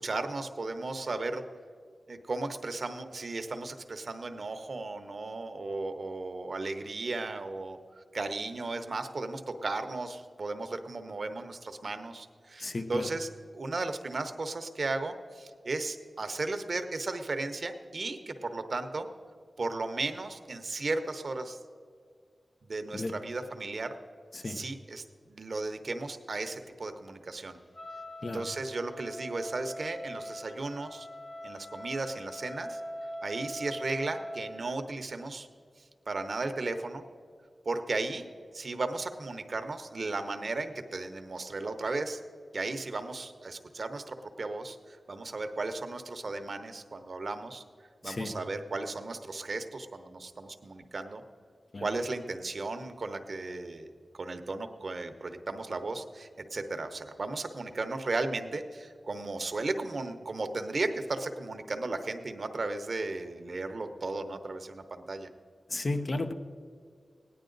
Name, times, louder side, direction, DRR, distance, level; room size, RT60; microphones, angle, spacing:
voice 1, 0.0-1.4 2.1-19.1 19.6-21.6 22.6-23.9 24.4-27.6 28.2-31.1 31.4-32.8 33.2-35.5 35.8-37.0 37.6-38.2 38.5-42.2 42.5-47.6 48.0-51.2 51.8-53.9 54.1-65.3, right 3 dB, 60° right, 8 dB, 0.8 m, -35 dB
voice 2, 12.6-13.1 22.9-23.1 24.3-24.6 28.2-28.5 48.0-48.3 51.7-51.9 65.7-66.3, left 2 dB, 55° left, 6 dB, 0.8 m, -33 dB
Wind instrument woodwind instrument, 27.7-34.5, equal, 30° left, 1.4 m, -42 dB
17.0 x 10.0 x 3.9 m, 2.1 s
wide cardioid pair, 65°, 0 cm